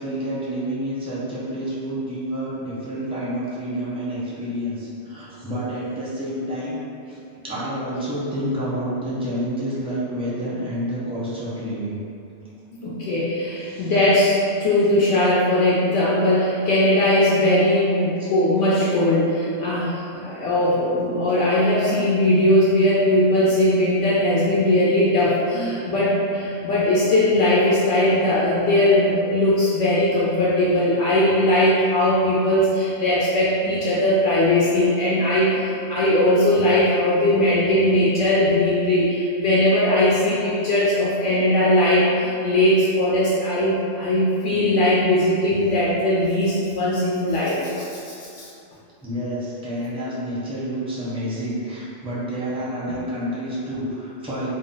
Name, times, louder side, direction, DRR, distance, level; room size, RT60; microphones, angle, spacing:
voice 1, 0.0-7.2 7.4-12.0 13.6-13.9 49.0-54.5, equal, 5° right, -9 dB, 0.4 m, -29 dB
voice 2, 12.8-48.5, left 1 dB, 85° left, -8 dB, 0.9 m, -19 dB
2.5 x 2.0 x 3.7 m, 2.6 s
omnidirectional pair, 1.2 m